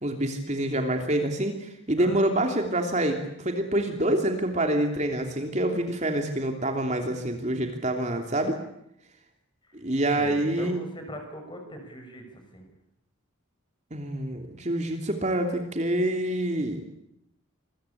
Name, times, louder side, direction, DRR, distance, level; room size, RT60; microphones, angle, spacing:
voice 1, 0.0-8.6 9.7-10.8 13.9-16.8, right 1 dB, 35° right, 4 dB, 3.0 m, -26 dB
voice 2, 10.1-12.7, equal, 20° left, 5 dB, 6.5 m, -40 dB
27.0 x 22.5 x 8.6 m, 0.78 s
head